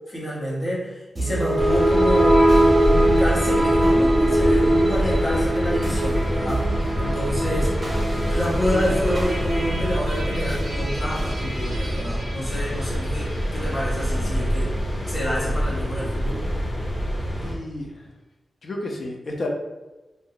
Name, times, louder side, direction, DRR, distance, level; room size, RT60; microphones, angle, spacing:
voice 1, 0.1-7.9 8.3-14.7 15.0-16.4, equal, 25° left, -7 dB, 0.8 m, -28 dB
sound 1, 1.2-13.5, right 1 dB, 35° right, 0.7 m, -23 dB
sound 2, 1.6-17.5, equal, 80° left, 0.9 m, -26 dB
voice 2, 17.4-17.9 18.6-19.5, left 2 dB, 55° left, 0 dB, 0.5 m, -31 dB
2.6 x 2.1 x 3.8 m, 1.1 s
wide cardioid pair, 180°, 0 cm